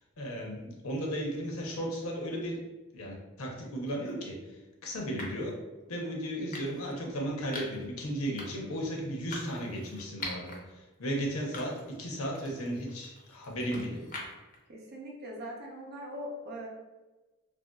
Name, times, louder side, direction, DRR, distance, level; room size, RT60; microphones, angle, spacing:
voice 1, 0.2-2.6 2.9-4.4 4.8-5.6 5.9-10.6 11.0-14.1, equal, 80° left, 0 dB, 0.7 m, -35 dB
sound 1, 3.9-4.1 5.2-5.5 6.5-7.0 7.5-7.9 8.4-8.7 9.3-10.6 11.0-11.1 11.5-12.0 12.4-14.6, left 2 dB, 35° left, 0.5 m, -43 dB
voice 2, 14.7-16.7, equal, 45° right, -3 dB, 0.6 m, -41 dB
3.2 x 2.6 x 2.2 m, 1.1 s
head